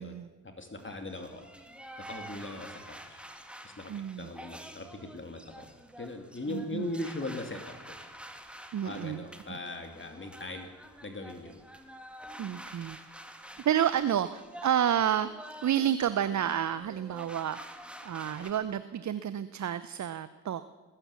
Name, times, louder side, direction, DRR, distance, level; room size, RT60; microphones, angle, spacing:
voice 1, 0.4-1.5 2.0-3.2 3.6-3.9 4.2-5.7 6.0-7.6 7.9-8.0 8.8-10.7 11.0-11.6, left 2 dB, 25° left, 5 dB, 2.6 m, -39 dB
sound 1, 0.8-18.5, equal, ahead, 2.1 m, -48 dB
voice 2, 3.9-4.3 6.5-6.9 8.7-9.2 12.4-13.0 13.6-15.3 15.6-17.6 18.0-20.6, right 10 dB, 40° right, 14 dB, 0.7 m, -30 dB
20.5 x 10.0 x 7.1 m, 1.3 s
hypercardioid pair, 45°, 46 cm